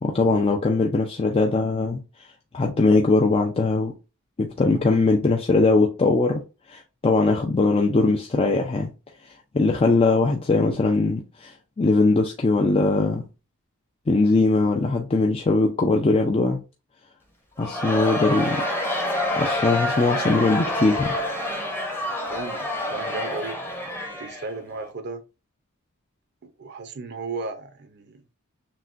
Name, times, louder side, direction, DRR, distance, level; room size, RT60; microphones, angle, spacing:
voice 1, 0.0-2.0 2.5-3.9 4.4-6.4 6.7-8.9 9.5-13.2 14.1-16.6 17.6-18.6 19.4-21.1, left 3 dB, 25° left, 0.4 m, -21 dB
Crowd, 17.6-24.9, left 1 dB, 10° left, 0.8 m, -27 dB
voice 2, 22.3-23.6 24.2-25.2 26.4-28.2, right 3 dB, 50° right, 0.5 m, -35 dB
5.9 x 2.2 x 2.5 m
head